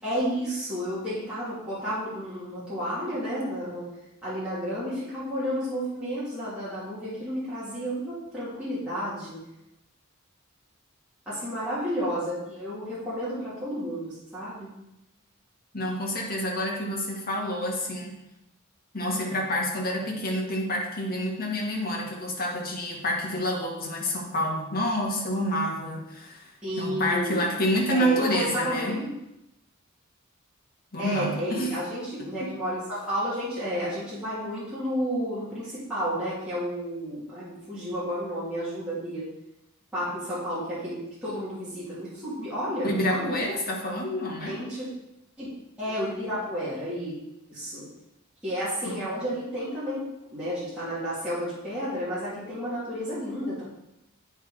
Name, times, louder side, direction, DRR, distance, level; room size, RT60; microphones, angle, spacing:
voice 1, 0.0-3.9 4.2-9.4 11.3-14.7 26.6-27.4 27.9-29.1 31.0-39.3 39.9-43.4 44.4-44.9 45.4-45.5 45.8-47.1 47.5-47.9 48.4-50.0 50.3-53.6, equal, 5° right, -13 dB, 2.8 m, -31 dB
voice 2, 15.7-18.2 18.9-26.5 26.8-29.0 30.9-31.8 32.2-32.6 42.8-44.6 48.8-48.9, equal, 45° left, -2 dB, 1.8 m, -28 dB
8.8 x 4.7 x 5.0 m, 0.89 s
head